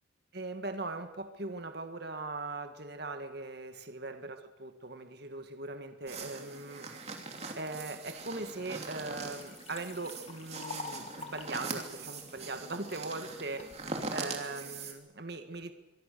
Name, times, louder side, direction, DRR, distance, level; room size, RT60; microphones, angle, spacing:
voice 1, 0.3-6.9 7.5-13.7 14.1-15.7, right 2 dB, 55° right, 7 dB, 1.8 m, -40 dB
sound 1, 6.1-14.9, right 3 dB, 35° right, 3.0 m, -42 dB
Liquid, 8.5-8.6 9.0-13.0 13.6-14.1, left 3 dB, 35° left, 2.5 m, -47 dB
24.5 x 24.0 x 6.9 m, 1.0 s
head